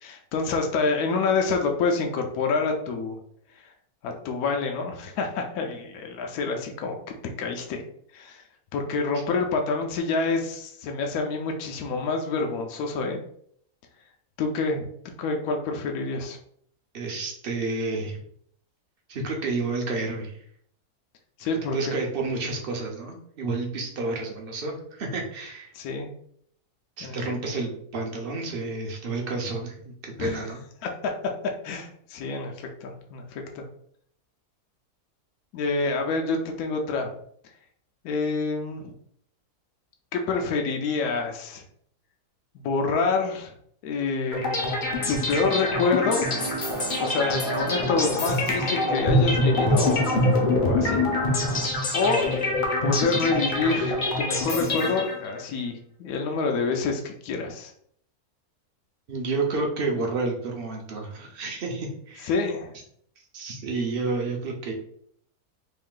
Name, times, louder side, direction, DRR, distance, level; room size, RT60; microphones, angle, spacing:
voice 1, 0.0-3.2 3.6-3.7 4.0-7.8 8.1-8.4 8.7-13.2 14.4-16.4 21.4-21.9 25.7-26.1 27.0-27.2 30.2-30.4 30.8-30.9 31.6-33.6 35.5-37.1 38.0-38.9 40.1-41.6 42.5-43.5 43.8-44.5 45.1-46.3 47.0-50.1 50.5-51.1 51.4-51.6 51.9-52.4 52.8-57.7 62.2-62.7, left 4 dB, 75° left, 3 dB, 1.0 m, -27 dB
voice 2, 16.9-18.2 19.1-20.4 21.7-25.7 27.0-30.6 59.1-62.3 63.3-64.7, right 3 dB, 55° right, 1 dB, 0.7 m, -30 dB
sound 1, 44.3-55.4, left 2 dB, 45° left, 0.7 m, -25 dB
sound 2, 45.5-51.7, right 5 dB, 70° right, 1.1 m, -35 dB
3.2 x 2.6 x 3.7 m, 0.66 s
omnidirectional pair, 1.6 m